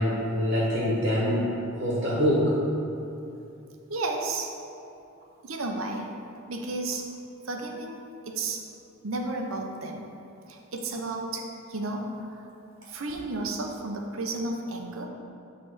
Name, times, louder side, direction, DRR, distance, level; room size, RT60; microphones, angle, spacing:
voice 1, 0.0-2.5, equal, 50° right, -7 dB, 1.4 m, -25 dB
voice 2, 3.9-4.5 5.4-6.1 6.5-7.1 7.4-8.0 8.3-8.6 9.0-10.1 10.5-12.5 12.8-15.1, right 2 dB, 80° right, 2 dB, 0.7 m, -32 dB
8.8 x 3.4 x 4.9 m, 2.7 s
head